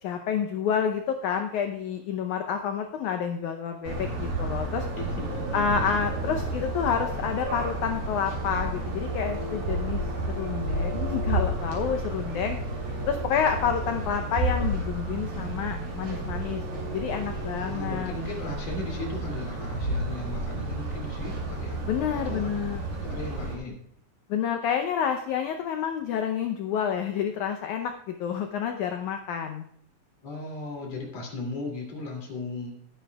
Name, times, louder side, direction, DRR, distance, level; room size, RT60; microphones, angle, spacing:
voice 1, 0.0-4.9 5.5-10.0 10.4-12.6 13.1-16.6 16.9-18.1 21.9-22.8 24.3-29.6, left 7 dB, 80° left, 5 dB, 1.8 m, -29 dB
sound 1, 3.8-23.6, right 2 dB, 85° right, 5.5 m, -31 dB
voice 2, 5.0-5.5 5.7-5.9 17.6-21.8 22.2-22.5 23.0-23.8 30.2-32.7, left 2 dB, 45° left, 0 dB, 3.5 m, -36 dB
19.0 x 10.0 x 2.3 m, 0.70 s
omnidirectional pair, 4.3 m